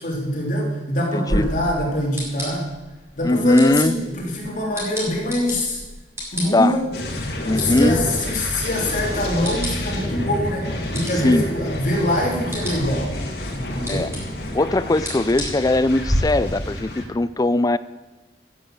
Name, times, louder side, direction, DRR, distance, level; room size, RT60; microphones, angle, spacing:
voice 1, 0.0-2.7 3.2-5.8 6.3-6.8 7.6-13.1 13.5-14.1, left 1 dB, 45° left, -2 dB, 3.3 m, -24 dB
voice 2, 1.1-1.5 3.2-4.0 6.4-6.8 7.4-8.0 11.2-11.5 13.9-14.1 14.5-17.8, left 2 dB, 20° left, 14 dB, 0.4 m, -20 dB
sound 1, 1.3-16.2, equal, 15° right, 5.2 m, -33 dB
sound 2, 6.9-17.1, left 1 dB, 65° left, 2.1 m, -29 dB
14.5 x 7.1 x 7.7 m, 1.1 s
head